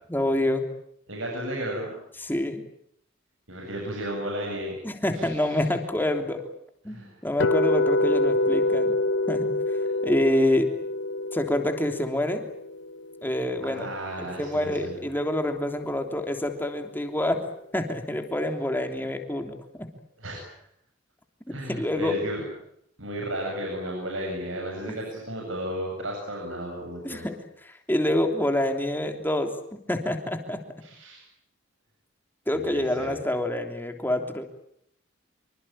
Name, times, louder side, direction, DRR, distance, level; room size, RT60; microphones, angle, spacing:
voice 1, 0.1-0.6 2.2-2.6 4.8-6.4 6.8-7.0 7.2-8.9 9.3-9.5 10.0-10.7 11.3-12.4 13.2-13.9 14.4-17.4 17.7-19.9 21.7-22.1 27.0-27.3 27.6-29.5 29.9-30.6 32.5-34.4, left 1 dB, 10° left, 5 dB, 3.2 m, -27 dB
voice 2, 1.1-2.0 3.5-4.7 5.1-5.6 6.8-7.2 13.6-15.0 20.2-20.5 21.5-22.4 23.0-27.3 30.8-31.2 32.5-33.2, right 1 dB, 80° right, 0 dB, 7.8 m, -34 dB
sound 1, 7.4-13.5, left 2 dB, 65° left, 1.1 m, -26 dB
26.0 x 25.0 x 8.9 m, 0.72 s
head